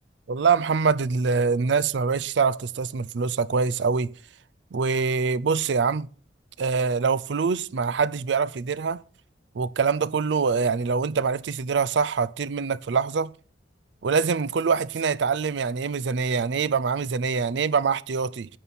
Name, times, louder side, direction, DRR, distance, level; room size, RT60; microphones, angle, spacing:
voice 1, 0.3-4.1 4.7-6.1 6.6-9.0 9.6-13.3 14.0-18.5, right 5 dB, 75° right, 0.5 m, -24 dB
12.5 x 9.2 x 4.1 m
head